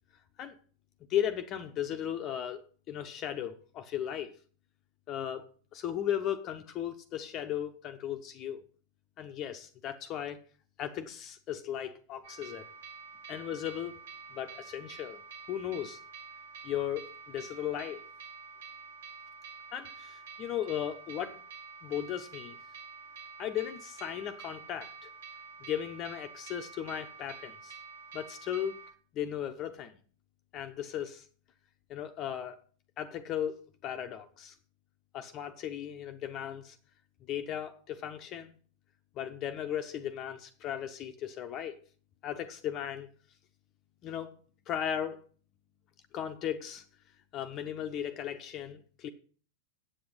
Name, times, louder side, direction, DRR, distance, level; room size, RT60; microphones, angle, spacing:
voice 1, 1.1-4.3 5.1-5.4 5.7-8.6 9.2-10.4 10.8-12.6 13.3-14.0 14.3-15.2 15.5-16.0 16.6-18.0 19.7-21.4 21.8-22.6 23.4-25.1 25.6-27.8 28.1-28.8 29.1-29.9 30.5-31.3 31.9-32.6 33.0-34.5 35.1-36.8 37.3-38.6 39.2-41.8 42.2-43.1 44.0-44.3 44.7-45.2 46.1-46.8 47.3-49.1, left 10 dB, 35° left, 0.8 m, -36 dB
sound 1, 12.2-28.9, right 5 dB, 65° right, 2.0 m, -48 dB
8.4 x 7.7 x 5.6 m
figure-of-eight pair, 90°, 0 cm